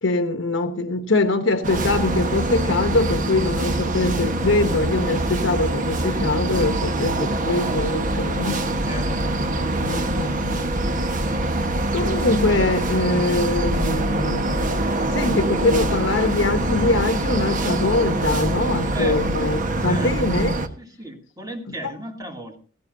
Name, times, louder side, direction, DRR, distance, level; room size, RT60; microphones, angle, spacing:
voice 1, 0.0-8.6 9.8-10.6 11.9-20.5, left 2 dB, 80° left, 1.0 m, -23 dB
sound 1, 1.6-20.7, right 1 dB, 45° right, 1.3 m, -24 dB
voice 2, 8.8-9.4 18.9-19.6 19.9-20.4 20.8-22.6, equal, 20° right, 2.6 m, -36 dB
16.5 x 16.0 x 2.7 m
head